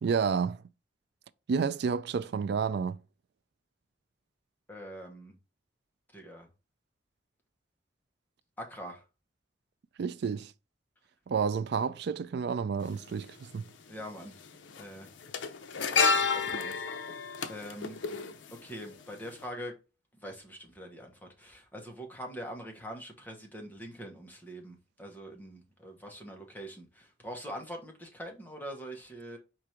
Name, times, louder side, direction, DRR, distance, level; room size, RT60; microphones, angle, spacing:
voice 1, 0.0-0.6 1.5-3.0 10.0-10.5 11.3-13.6, right 6 dB, 60° right, 0.3 m, -30 dB
voice 2, 4.7-5.3 6.1-6.5 8.6-9.0 13.9-14.3 14.8-15.1 15.9-16.9 17.1-18.0 18.6-19.7 20.2-29.4, equal, 10° left, 1.0 m, -43 dB
sound 1, 12.8-12.9 14.1-14.4 14.7-19.0 19.3-19.4, left 5 dB, 80° left, 0.5 m, -30 dB
4.7 x 2.6 x 4.3 m
head